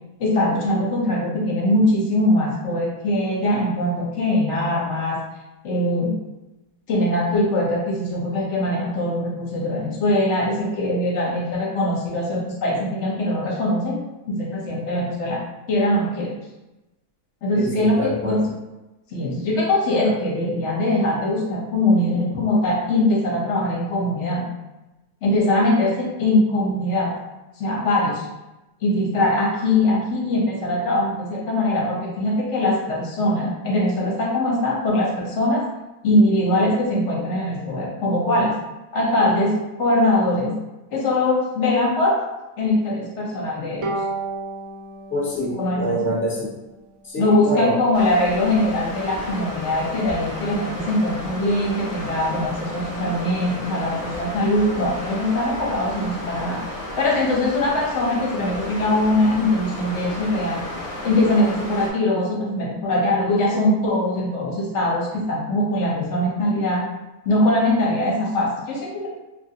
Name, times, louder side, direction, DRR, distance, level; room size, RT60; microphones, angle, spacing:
voice 1, 0.2-5.2 5.6-6.2 6.9-14.0 14.3-15.4 15.7-16.4 17.4-18.4 19.1-24.4 25.2-27.1 27.6-28.2 28.8-35.6 36.0-38.5 38.9-40.6 40.9-42.2 42.6-43.9 45.6-45.8 47.2-56.6 57.0-60.6 61.0-66.8 67.3-69.1, left 1 dB, 55° left, -3 dB, 0.9 m, -21 dB
voice 2, 17.5-18.5 45.1-46.5 47.0-47.8, equal, 10° left, -8 dB, 1.0 m, -25 dB
Bowed string instrument, 43.8-47.1, right 3 dB, 70° right, 1.0 m, -33 dB
sound 1, 47.9-61.9, equal, 40° left, 0.5 m, -33 dB
3.0 x 2.5 x 2.7 m, 1.0 s
omnidirectional pair, 1.6 m